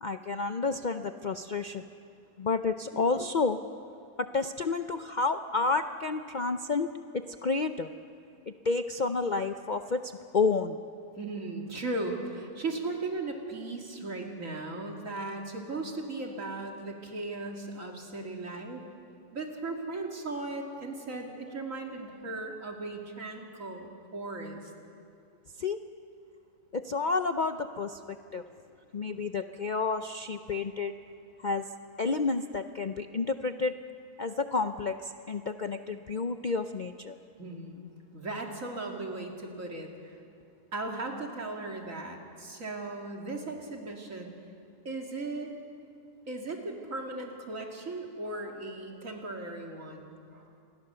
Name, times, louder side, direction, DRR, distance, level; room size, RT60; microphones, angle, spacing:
voice 1, 0.0-1.8 2.4-3.6 4.2-6.9 7.4-7.9 8.5-10.8 25.6-25.8 26.7-28.4 28.9-30.9 31.4-31.7 32.0-33.7 34.2-37.2, left 4 dB, 65° left, 8 dB, 0.4 m, -30 dB
voice 2, 11.2-18.8 19.3-24.7 37.4-37.8 38.1-39.9 40.7-44.3 44.8-45.5 46.3-50.5, right 2 dB, 55° right, 1 dB, 2.8 m, -37 dB
27.5 x 21.5 x 6.9 m, 2.4 s
omnidirectional pair, 1.7 m